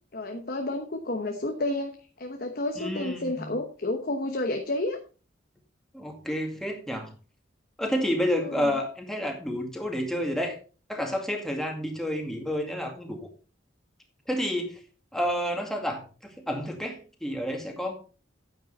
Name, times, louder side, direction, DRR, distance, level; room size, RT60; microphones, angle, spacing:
voice 1, 0.1-5.0 8.4-8.7, left 2 dB, 50° left, 5 dB, 1.0 m, -31 dB
voice 2, 2.8-3.5 5.9-7.1 7.8-10.5 10.9-13.3 14.3-14.8 15.1-16.0 16.5-17.9, equal, ahead, 1 dB, 2.2 m, -30 dB
9.4 x 9.3 x 4.1 m, 0.36 s
head